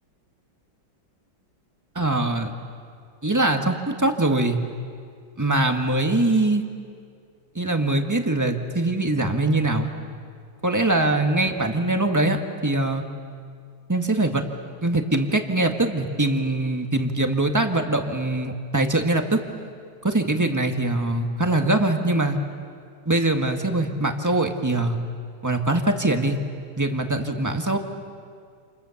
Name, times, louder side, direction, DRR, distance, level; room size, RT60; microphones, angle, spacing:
voice 1, 1.9-2.5 3.2-4.6 5.4-6.6 7.5-9.9 10.6-13.0 13.9-14.4 14.8-19.4 20.0-22.4 23.0-25.0 25.4-26.4 26.8-27.8, right 2 dB, 10° right, 4 dB, 1.4 m, -22 dB
29.0 x 28.5 x 7.2 m, 2.2 s
omnidirectional pair, 2.2 m